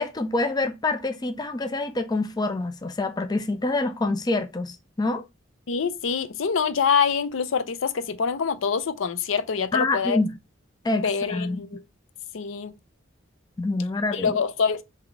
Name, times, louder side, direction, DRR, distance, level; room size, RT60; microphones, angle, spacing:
voice 1, 0.0-5.2 9.7-10.3 10.8-11.6 13.6-14.4, left 2 dB, 20° left, 0.4 m, -26 dB
voice 2, 5.7-10.2 10.9-11.8 12.3-12.7 14.1-14.8, left 6 dB, 75° left, 0.5 m, -25 dB
3.9 x 2.8 x 4.6 m
head